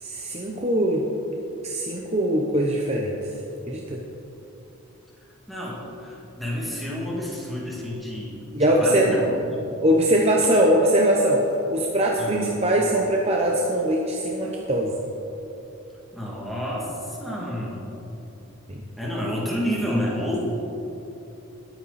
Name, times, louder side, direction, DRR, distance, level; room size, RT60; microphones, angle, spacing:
voice 1, 0.0-1.1 1.6-3.1 3.7-4.0 8.5-9.1 9.8-15.0 18.7-18.8, right 1 dB, 30° right, -1 dB, 0.9 m, -21 dB
voice 2, 5.5-8.5 8.8-9.6 12.2-12.5 16.1-17.9 19.0-20.4, equal, ahead, -5 dB, 2.5 m, -30 dB
20.5 x 9.2 x 4.3 m, 3.0 s
head